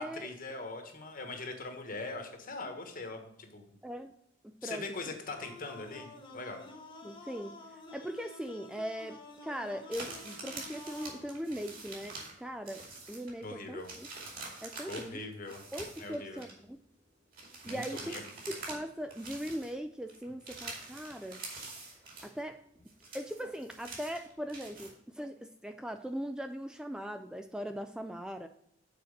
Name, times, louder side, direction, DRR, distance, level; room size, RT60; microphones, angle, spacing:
voice 1, 0.0-3.7 4.6-6.6 13.4-13.9 14.9-15.6 16.0-16.4 17.6-18.2, left 3 dB, 50° left, 5 dB, 1.4 m, -41 dB
voice 2, 4.4-5.1 7.0-7.5 7.9-14.1 14.6-15.2 15.7-16.8 17.6-18.1 18.5-21.4 22.2-22.6 23.1-28.5, equal, 5° right, 7 dB, 0.3 m, -40 dB
sound 1, 5.3-11.3, left 2 dB, 30° left, 1.2 m, -50 dB
sound 2, 9.9-12.4 12.7-13.4 13.8-16.5 17.3-18.9 19.1-19.7 20.1-22.4 22.8-24.9, right 3 dB, 50° right, 2.5 m, -45 dB
7.0 x 4.5 x 6.5 m, 0.73 s
head